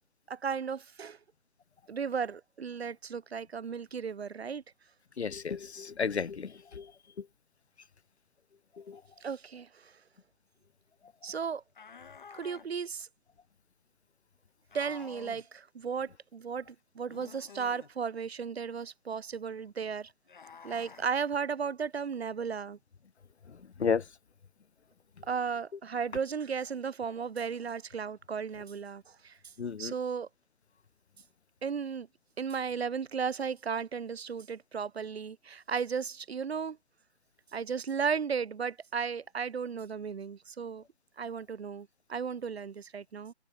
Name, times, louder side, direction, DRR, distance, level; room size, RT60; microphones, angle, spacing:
voice 1, 0.3-1.2 1.9-4.6 9.2-9.9 11.2-11.6 12.3-13.1 14.7-20.1 20.6-22.8 25.3-29.5 29.8-30.3 31.6-32.1 32.4-36.8 37.5-40.8 41.2-43.3, right 6 dB, 60° right, 1.0 m, -35 dB
voice 2, 5.2-6.9 7.2-7.3 8.8-9.0 23.5-24.0 29.6-29.9, left 6 dB, 65° left, 1.4 m, -33 dB
sound 1, 11.7-12.7 14.7-15.4 17.1-17.9 20.3-21.1, left 6 dB, 45° left, 2.5 m, -50 dB
hypercardioid pair, 175°, 35 cm